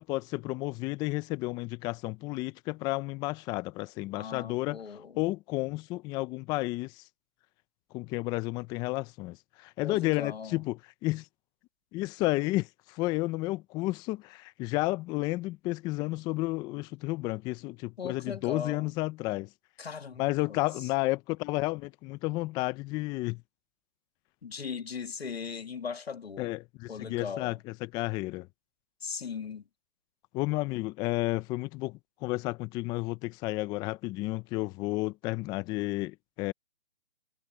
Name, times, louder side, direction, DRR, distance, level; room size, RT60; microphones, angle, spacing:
voice 1, 0.0-4.8 5.2-7.0 7.9-11.3 11.9-19.5 20.2-23.4 26.4-28.5 30.3-36.5, left 20 dB, 15° left, 0.6 m, -32 dB
voice 2, 4.1-5.2 9.8-10.6 18.0-18.9 19.8-20.6 24.4-26.5 26.9-27.6 29.0-29.6, left 6 dB, 80° left, 2.6 m, -38 dB
hypercardioid pair, 140°, 31 cm